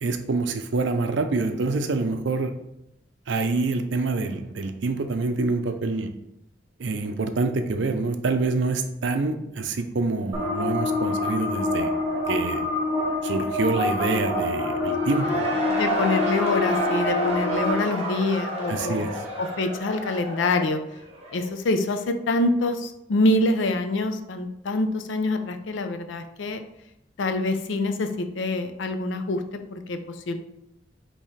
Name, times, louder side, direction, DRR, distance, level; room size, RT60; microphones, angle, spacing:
voice 1, 0.0-2.5 3.3-6.1 6.8-11.9 12.3-12.6 13.2-15.5 18.7-19.1, right 3 dB, 70° right, 7 dB, 0.5 m, -26 dB
sound 1, 10.3-17.7, left 2 dB, 15° right, 1.3 m, -26 dB
Cheering / Crowd, 14.9-21.6, left 1 dB, 35° right, 0.8 m, -31 dB
voice 2, 15.7-19.1 19.4-20.8 21.3-26.6 27.2-30.4, left 2 dB, 75° left, 8 dB, 0.5 m, -25 dB
5.4 x 2.9 x 3.2 m, 0.82 s
head